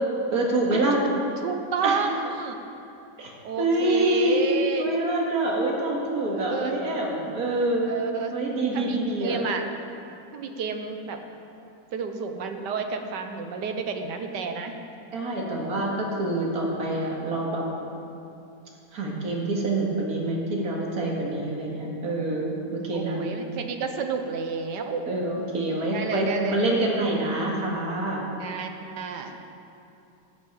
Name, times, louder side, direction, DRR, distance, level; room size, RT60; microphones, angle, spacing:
voice 1, 0.3-1.0 1.8-2.0 3.2-3.3 3.6-4.4 4.8-7.9 8.3-9.4 15.1-17.7 18.9-23.2 25.0-28.3, right 2 dB, 60° right, -2 dB, 2.4 m, -26 dB
voice 2, 1.4-2.6 3.4-5.0 6.2-6.8 7.9-8.3 8.7-9.6 10.3-11.2 11.9-14.7 19.2-19.4 22.9-25.1 25.9-26.6 28.4-29.4, right 5 dB, 85° right, 6 dB, 1.6 m, -31 dB
13.0 x 6.7 x 8.8 m, 2.7 s
omnidirectional pair, 1.8 m